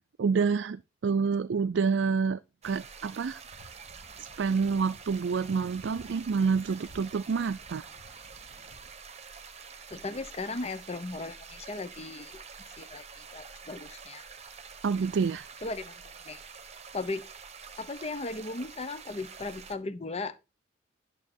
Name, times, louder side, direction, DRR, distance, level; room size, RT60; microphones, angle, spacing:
voice 1, 0.2-3.4 4.2-7.8 14.8-15.5, right 5 dB, 65° right, 0.4 m, -28 dB
sound 1, 2.6-19.8, right 5 dB, 35° right, 1.1 m, -47 dB
sound 2, 3.5-8.9, equal, 65° left, 2.1 m, -55 dB
voice 2, 9.9-12.3 12.8-14.2 15.6-16.4 16.9-17.2 17.8-20.4, left 3 dB, 35° left, 0.8 m, -37 dB
11.0 x 6.5 x 4.3 m
head